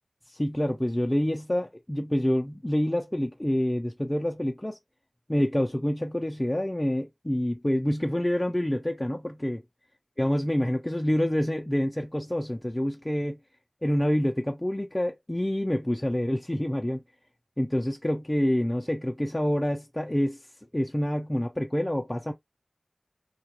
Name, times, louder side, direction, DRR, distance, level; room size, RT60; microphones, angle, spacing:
voice 1, 0.3-4.8 5.3-9.6 10.2-13.4 13.8-17.0 17.6-20.4 20.7-22.3, left 1 dB, 20° left, 0.4 m, -27 dB
2.3 x 2.2 x 2.9 m
wide cardioid pair, 50°, 0 cm